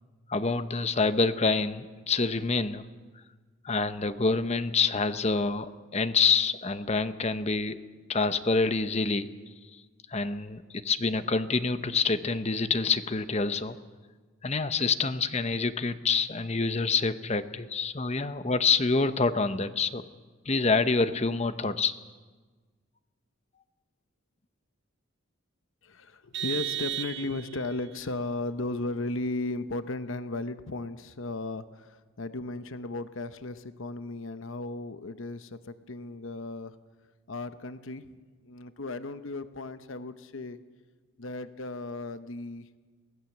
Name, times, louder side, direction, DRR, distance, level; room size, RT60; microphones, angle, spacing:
voice 1, 0.3-2.8 3.6-7.8 8.1-9.3 10.1-13.8 14.4-20.0 20.5-21.9, left 4 dB, 30° left, 12 dB, 0.8 m, -27 dB
voice 2, 25.8-36.8 37.3-38.2 38.4-40.6 41.2-42.7, left 2 dB, 70° left, 11 dB, 0.9 m, -35 dB
Vehicle horn car horn honking, 26.3-27.7, right 11 dB, 55° right, 0.8 m, -34 dB
23.5 x 16.5 x 7.3 m, 1.4 s
head